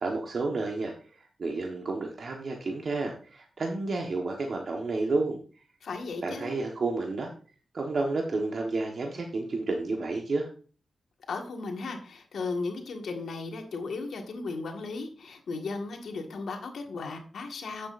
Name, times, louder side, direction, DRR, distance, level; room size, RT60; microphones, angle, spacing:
voice 1, 0.0-5.4 6.2-7.3 7.7-10.5, right 3 dB, 60° right, 1 dB, 1.3 m, -31 dB
voice 2, 5.8-6.6 11.3-17.9, left 3 dB, 80° left, 3 dB, 1.7 m, -36 dB
10.5 x 7.6 x 2.6 m, 0.39 s
cardioid pair, 65°, 0 cm